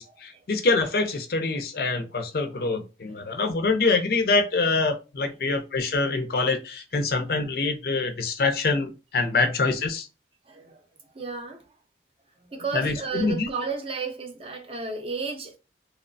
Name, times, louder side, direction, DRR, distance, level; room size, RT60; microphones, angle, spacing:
voice 1, 0.0-10.1 12.7-13.5, left 3 dB, 55° left, 0.5 m, -25 dB
voice 2, 10.5-10.8 11.1-11.7 12.4-15.6, right 4 dB, 30° right, 0.5 m, -33 dB
2.9 x 2.0 x 2.5 m
head